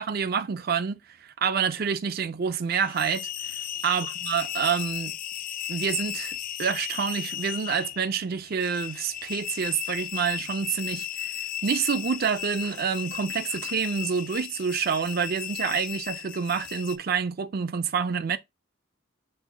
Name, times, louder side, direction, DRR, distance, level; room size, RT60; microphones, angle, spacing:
voice 1, 0.0-3.3 3.8-5.2 5.7-18.4, right 6 dB, 45° right, 0.4 m, -28 dB
sound 1, 2.7-17.0, left 11 dB, 40° left, 0.3 m, -35 dB
5.9 x 3.9 x 2.2 m
head